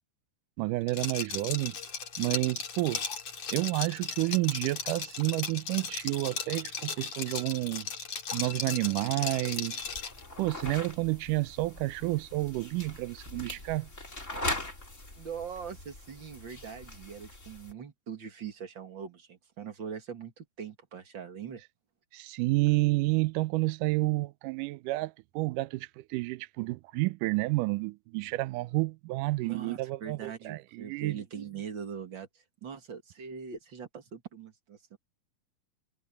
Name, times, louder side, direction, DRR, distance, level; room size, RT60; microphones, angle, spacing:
voice 1, 0.6-1.8 2.2-3.0 3.5-7.9 8.3-9.9 10.4-13.9 22.1-31.2, right 21 dB, 80° right, 1.9 m, -30 dB
Liquid, 0.9-10.2, left 6 dB, 45° left, 3.8 m, -36 dB
sound 1, 9.8-17.7, left 1 dB, 20° left, 4.7 m, -41 dB
voice 2, 15.2-21.6 29.4-35.0, right 7 dB, 40° right, 2.1 m, -42 dB
omnidirectional pair, 4.2 m